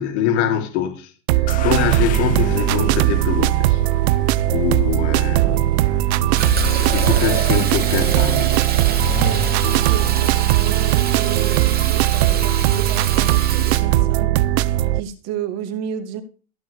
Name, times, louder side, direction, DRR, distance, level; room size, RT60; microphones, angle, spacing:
voice 1, 0.0-3.8 4.1-5.7 6.6-8.6, left 9 dB, 65° left, 3.0 m, -24 dB
sound 1, 1.3-15.0, right 16 dB, 60° right, 0.7 m, -18 dB
sound 2, 1.5-14.3, left 10 dB, 25° left, 0.4 m, -32 dB
Fill (with liquid), 6.4-13.8, right 7 dB, 25° right, 2.3 m, -28 dB
voice 2, 9.2-14.3 14.6-16.2, right 9 dB, 45° right, 2.4 m, -32 dB
15.5 x 7.6 x 3.4 m
supercardioid pair, 135°, 37 cm